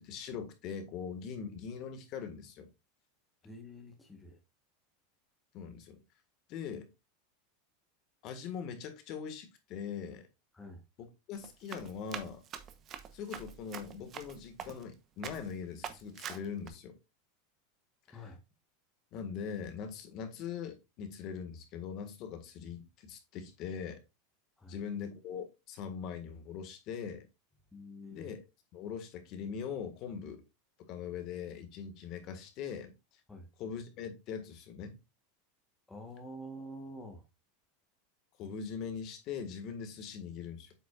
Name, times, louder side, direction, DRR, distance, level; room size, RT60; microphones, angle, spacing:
voice 1, 0.0-2.7 5.5-6.0 6.5-6.9 8.2-10.3 11.0-12.4 13.1-17.0 18.1-18.2 19.1-24.0 24.7-27.3 28.1-28.4 28.7-30.4 30.8-32.9 33.6-35.0 38.4-40.7, left 7 dB, 45° left, 1.7 m, -41 dB
voice 2, 3.4-4.4 10.5-10.8 18.1-18.4 24.6-24.7 27.7-28.3 33.3-33.5 35.9-37.2, equal, 10° left, 1.2 m, -47 dB
Run, 11.3-14.9 15.2-15.5 15.8-16.7, right 8 dB, 30° right, 0.9 m, -44 dB
8.2 x 6.0 x 2.4 m
supercardioid pair, 145°, 0 cm